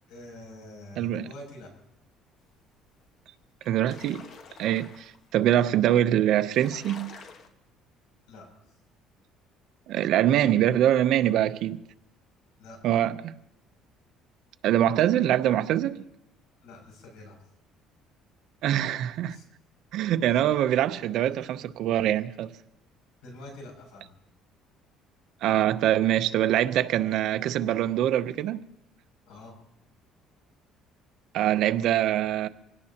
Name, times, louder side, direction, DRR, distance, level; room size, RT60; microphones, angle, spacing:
voice 1, 0.1-1.7 8.3-8.5 12.6-12.8 16.6-17.4 19.3-19.4 23.2-24.1 29.3-29.5, left 1 dB, 90° left, 7.0 m, -45 dB
voice 2, 1.0-1.3 3.7-4.2 4.6-7.1 9.9-11.8 12.8-13.3 14.6-16.0 18.6-19.4 19.9-22.5 25.4-28.6 31.3-32.5, right 12 dB, 65° right, 0.7 m, -24 dB
sound 1, 3.0-3.1 3.4-5.2 5.9-6.0 6.3-7.5, left 5 dB, 50° left, 1.4 m, -47 dB
25.0 x 17.0 x 2.9 m
cardioid pair, 130°, 0 cm